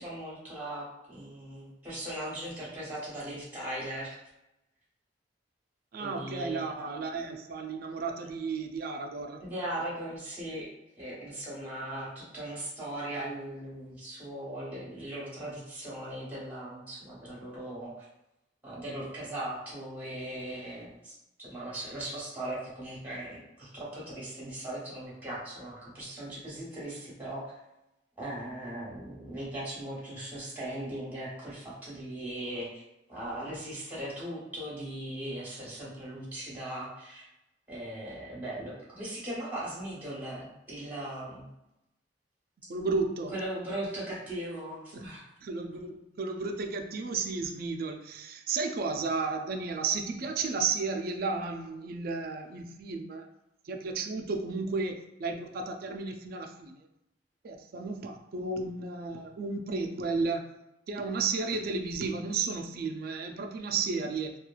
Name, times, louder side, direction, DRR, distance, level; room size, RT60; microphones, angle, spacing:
voice 1, 0.0-4.2 6.0-6.6 9.4-10.7 11.0-18.1 18.6-21.1 21.4-27.5 28.2-32.8 33.1-37.3 37.7-41.5 43.3-45.2, right 1 dB, 10° right, -7 dB, 1.1 m, -39 dB
voice 2, 5.9-9.5 42.7-43.3 44.9-45.1 45.4-53.3 53.6-56.8 57.4-60.5 60.9-64.4, right 4 dB, 55° right, 4 dB, 0.4 m, -33 dB
2.9 x 2.3 x 2.3 m, 0.89 s
head